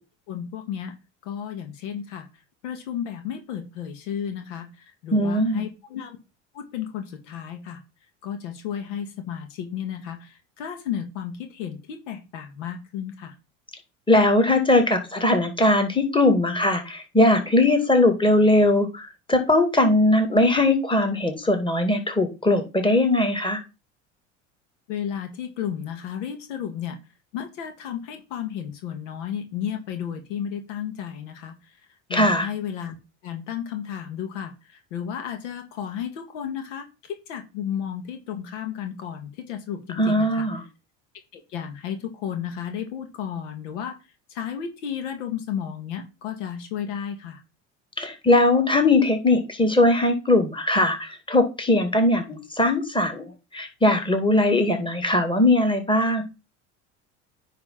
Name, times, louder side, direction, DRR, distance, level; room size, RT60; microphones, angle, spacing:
voice 1, 0.3-1.0 1.2-2.3 2.6-4.7 5.0-6.2 6.5-7.8 8.2-13.3 24.9-27.0 27.3-31.5 32.1-33.0 33.2-40.5 41.3-44.0 44.3-47.4, left 9 dB, 75° left, 6 dB, 1.7 m, -33 dB
voice 2, 5.1-5.6 14.1-23.6 32.1-32.5 40.0-40.6 48.0-56.2, left 2 dB, 15° left, 5 dB, 2.4 m, -20 dB
9.6 x 3.4 x 5.8 m, 0.28 s
hypercardioid pair, 75°, 37 cm